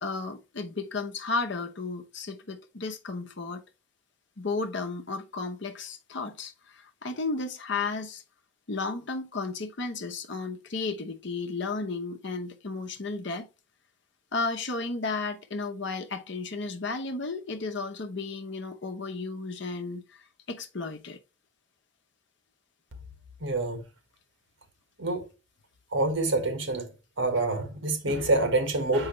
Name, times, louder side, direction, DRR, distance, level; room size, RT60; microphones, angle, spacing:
voice 1, 0.0-3.6 4.4-8.2 8.7-13.5 14.3-21.2, left 3 dB, 60° left, 0.9 m, -33 dB
voice 2, 23.4-23.8 25.0-25.2 25.9-26.9 27.2-29.1, right 2 dB, 75° right, 1.5 m, -26 dB
6.4 x 4.8 x 3.1 m
head